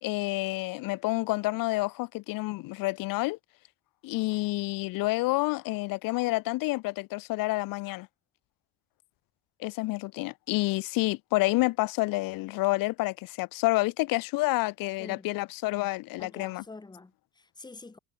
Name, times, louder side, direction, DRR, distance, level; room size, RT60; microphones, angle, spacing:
voice 1, 0.0-3.4 4.0-8.1 9.6-16.6, left 21 dB, 75° left, 0.5 m, -29 dB
voice 2, 16.2-18.0, left 3 dB, 10° left, 2.2 m, -47 dB
cardioid pair, 135°, 34 cm